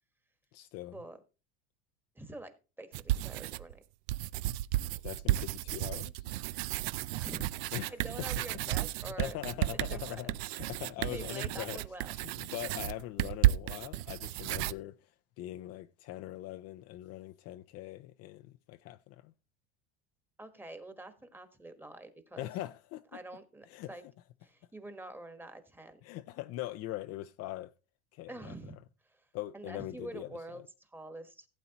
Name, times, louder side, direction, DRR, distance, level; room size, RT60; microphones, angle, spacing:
voice 1, 0.5-1.0 5.0-6.2 7.7-8.3 9.0-11.8 12.1-15.0 15.4-19.3 22.4-23.0 23.7-24.1 26.0-27.7 28.1-28.5 29.3-30.3, left 15 dB, 50° left, 0.5 m, -42 dB
voice 2, 2.1-3.8 7.2-7.6 7.9-9.4 9.7-10.2 10.6-12.1 20.4-22.5 23.1-24.0 24.4-26.0 28.3-28.8 29.0-29.3 29.5-31.5, right 2 dB, 5° right, 1.3 m, -46 dB
sound 1, 2.9-3.7 4.1-14.7, right 15 dB, 75° right, 0.5 m, -33 dB
16.0 x 8.1 x 2.9 m
supercardioid pair, 130°, 32 cm